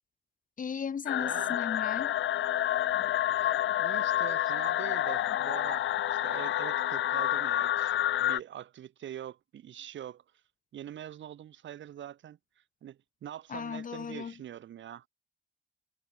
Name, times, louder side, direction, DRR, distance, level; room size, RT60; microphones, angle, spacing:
voice 1, 0.6-2.2 2.9-3.2 13.5-14.3, left 6 dB, 40° left, 1.8 m, -36 dB
sound 1, 1.1-8.4, left 12 dB, 75° left, 2.1 m, -29 dB
voice 2, 1.2-1.6 3.3-10.2 10.7-12.4 12.8-15.1, right 11 dB, 70° right, 7.5 m, -44 dB
cardioid pair, 90°, 20 cm